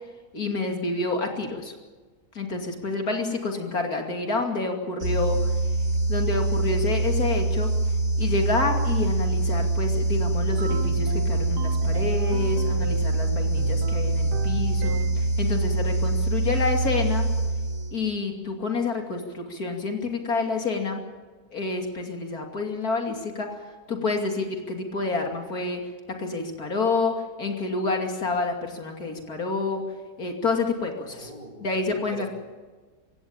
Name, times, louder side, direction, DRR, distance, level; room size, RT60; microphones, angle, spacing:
voice 1, 0.3-1.7 2.3-5.5 6.1-7.7 8.2-17.3 17.9-21.0 21.5-23.6 23.9-25.8 26.2-27.1 27.4-29.8 30.2-31.3 31.6-32.3, left 3 dB, 65° left, 3 dB, 3.1 m, -28 dB
sound 1, 5.0-18.1, right 2 dB, 65° right, 4.0 m, -24 dB
sound 2, 10.6-13.2 13.6-15.4, right 7 dB, 85° right, 1.7 m, -37 dB
voice 2, 31.1-32.3, right 1 dB, 25° right, 2 dB, 3.1 m, -43 dB
23.5 x 17.0 x 8.8 m, 1.4 s
omnidirectional pair, 1.7 m